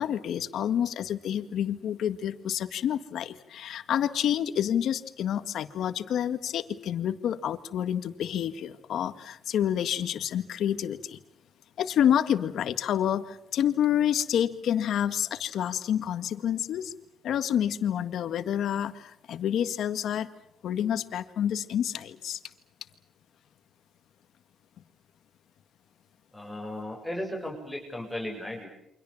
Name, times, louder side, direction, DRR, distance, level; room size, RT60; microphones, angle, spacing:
voice 1, 0.0-11.2 11.8-16.9 17.2-20.3 20.6-22.4, left 10 dB, 70° left, 11 dB, 1.9 m, -28 dB
voice 2, 26.3-28.7, left 1 dB, 5° left, 0 dB, 7.5 m, -35 dB
29.0 x 25.5 x 7.3 m, 0.75 s
cardioid pair, 90°, 0 cm